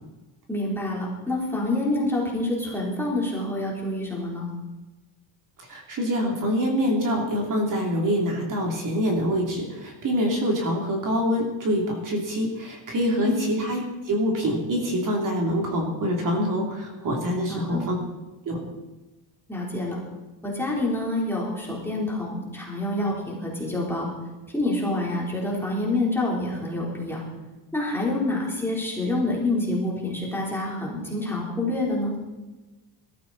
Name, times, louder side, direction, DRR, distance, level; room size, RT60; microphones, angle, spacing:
voice 1, 0.5-4.5 13.2-13.4 17.5-17.8 19.5-20.0 20.4-24.1 24.5-27.2 27.7-32.1, left 2 dB, 5° left, -4 dB, 3.7 m, -27 dB
voice 2, 5.6-17.9 18.4-18.6, equal, 40° right, 0 dB, 3.2 m, -25 dB
21.5 x 13.5 x 4.2 m, 1.1 s
cardioid pair, 175°, 48 cm